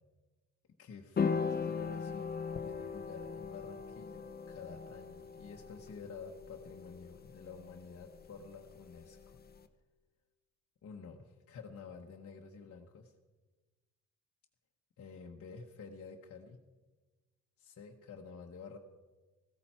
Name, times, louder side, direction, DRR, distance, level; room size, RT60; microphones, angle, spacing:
voice 1, 0.8-9.4 10.8-13.1 15.0-16.6 17.6-18.8, left 5 dB, 50° left, 0 dB, 1.2 m, -50 dB
sound 1, 1.2-9.6, left 5 dB, 30° left, 1.0 m, -39 dB
16.0 x 13.5 x 4.4 m, 1.3 s
cardioid pair, 90°, 30 cm